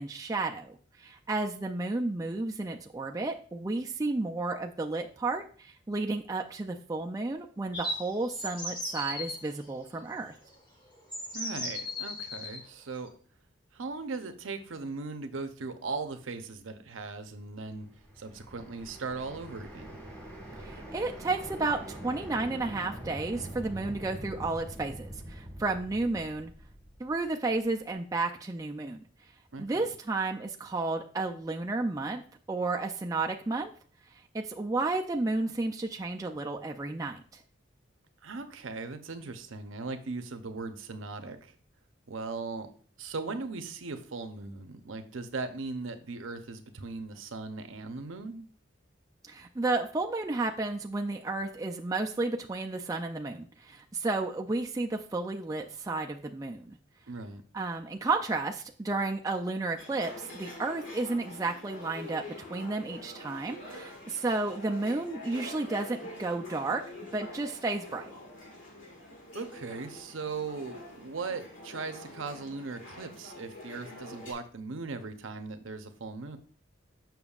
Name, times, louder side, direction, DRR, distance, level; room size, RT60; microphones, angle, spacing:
voice 1, 0.0-10.3 20.6-26.5 27.0-29.0 29.6-32.2 32.5-33.7 34.3-37.4 49.3-56.8 57.5-62.2 62.5-66.8 67.1-68.1, right 3 dB, 15° right, 2 dB, 0.3 m, -32 dB
sound 1, 7.7-9.4 10.4-10.5 11.1-12.6, left 1 dB, 25° left, 1.2 m, -36 dB
voice 2, 11.3-13.1 13.7-17.9 18.2-20.0 29.5-29.9 38.2-41.5 42.1-42.7 43.0-48.5 57.1-57.4 69.3-76.4, right 4 dB, 80° right, 8 dB, 0.7 m, -38 dB
sound 2, 17.7-27.7, right 1 dB, 5° left, 1.6 m, -44 dB
sound 3, 59.8-74.3, left 1 dB, 75° left, 1.8 m, -46 dB
7.0 x 5.9 x 2.4 m, 0.43 s
head